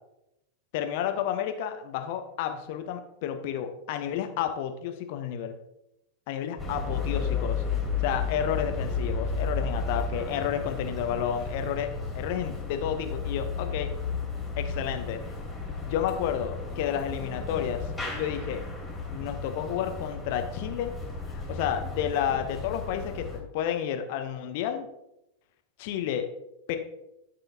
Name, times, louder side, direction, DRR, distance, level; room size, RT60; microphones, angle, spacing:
voice 1, 0.7-5.6 6.3-7.6 8.0-13.9 14.6-15.2 15.7-17.9 18.1-18.6 19.1-20.9 21.3-24.9 25.8-26.3 26.7-26.8, left 9 dB, 50° left, 7 dB, 0.9 m, -31 dB
sound 1, 6.6-23.4, left 4 dB, 10° left, 2.6 m, -33 dB
12.5 x 5.5 x 2.8 m, 0.87 s
figure-of-eight pair, 90°, 0 cm